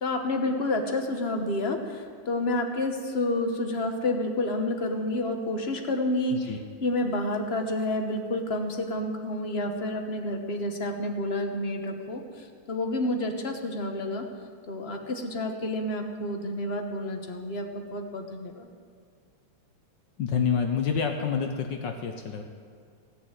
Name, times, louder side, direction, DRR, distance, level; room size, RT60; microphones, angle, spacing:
voice 1, 0.0-14.3 14.7-18.7, left 1 dB, 35° left, 4 dB, 1.2 m, -29 dB
voice 2, 20.2-22.4, left 6 dB, 65° left, 4 dB, 1.5 m, -27 dB
17.0 x 7.0 x 8.9 m, 2.2 s
omnidirectional pair, 2.3 m